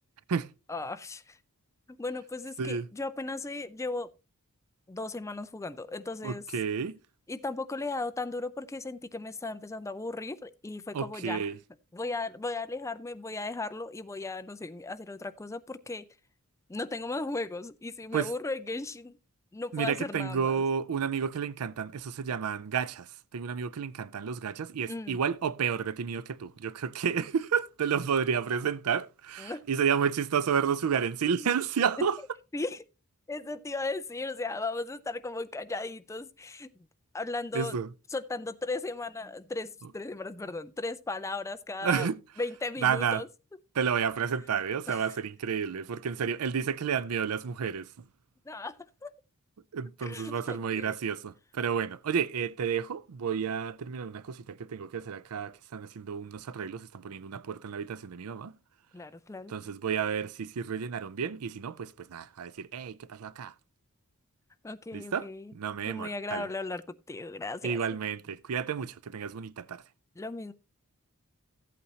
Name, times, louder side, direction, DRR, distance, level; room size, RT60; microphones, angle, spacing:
voice 1, 0.7-1.4 1.9-4.1 4.9-6.4 7.3-11.4 11.9-16.1 16.7-19.2 19.5-20.6 24.9-25.2 29.4-29.6 31.4-31.5 32.5-32.8 33.3-36.7 37.1-37.8 38.1-42.1 42.4-43.3 44.9-45.0 48.5-48.8 49.0-49.1 50.0-50.9 58.9-59.5 64.6-65.5 65.9-67.8 70.2-70.5, left 3 dB, 15° left, 0.4 m, -36 dB
voice 2, 6.2-7.0 10.9-11.6 18.1-18.3 19.7-32.2 37.5-37.9 41.8-42.2 42.8-43.2 43.7-48.1 49.7-58.5 59.5-63.5 64.9-66.5 67.6-69.8, right 7 dB, 85° right, 0.5 m, -31 dB
14.5 x 8.4 x 2.8 m
head